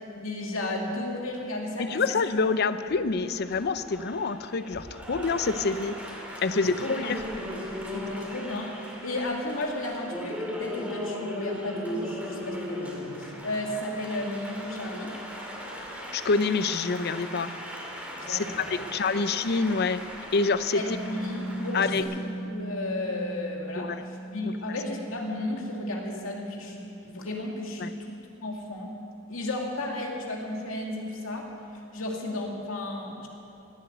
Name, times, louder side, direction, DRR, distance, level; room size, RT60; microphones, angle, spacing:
voice 1, 0.2-2.2 6.5-7.2 7.9-15.2 18.2-18.9 19.1-19.2 20.7-29.0 29.3-31.5 31.9-33.3, left 1 dB, 85° left, 0 dB, 2.5 m, -34 dB
voice 2, 1.8-6.0 6.4-7.2 16.1-17.5 18.3-20.0 20.3-20.8 21.7-22.0 23.8-24.0 27.8-27.9, left 4 dB, 55° left, 12 dB, 0.6 m, -26 dB
Applause, 2.3-22.0, equal, 5° right, 2.4 m, -38 dB
Piano, 20.9-28.2, right 2 dB, 10° left, 1.1 m, -40 dB
17.0 x 8.1 x 9.1 m, 2.7 s
head